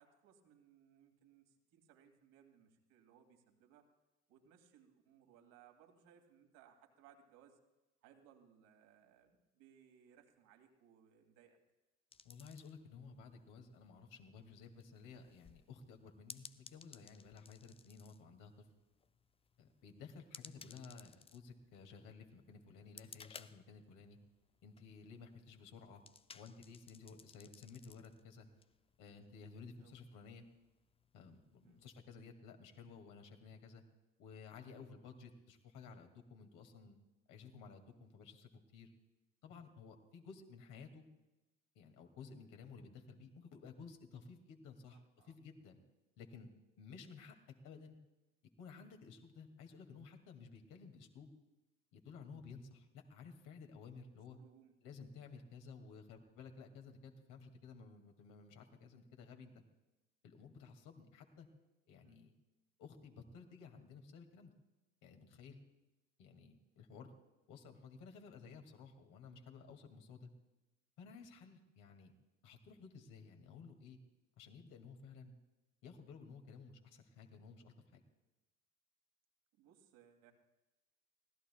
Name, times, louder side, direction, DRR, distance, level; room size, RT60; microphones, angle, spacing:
voice 1, 0.0-3.8 4.3-7.6 8.0-11.6 29.8-30.0 31.6-31.8 44.9-45.4 54.3-54.8 62.0-62.2 66.9-67.0 79.5-80.3, right 8 dB, 65° right, 4 dB, 2.5 m, -66 dB
sound 1, 12.1-32.0, left 5 dB, 15° left, 0.5 m, -61 dB
voice 2, 12.2-18.7 19.6-24.2 24.6-26.0 26.3-28.5 29.0-30.4 31.1-33.8 34.2-37.0 37.3-38.9 39.4-41.0 41.8-45.0 45.3-45.8 46.2-46.5 46.8-47.4 47.6-48.0 48.6-51.3 51.9-54.4 54.8-59.6 60.2-61.5 61.9-62.3 62.8-64.5 65.0-65.6 66.2-67.1 67.5-70.3 71.0-72.1 72.4-74.0 74.4-75.3 75.8-78.0, left 5 dB, 55° left, 4 dB, 2.3 m, -55 dB
24.5 x 18.0 x 2.3 m, 1.0 s
figure-of-eight pair, 60°, 37 cm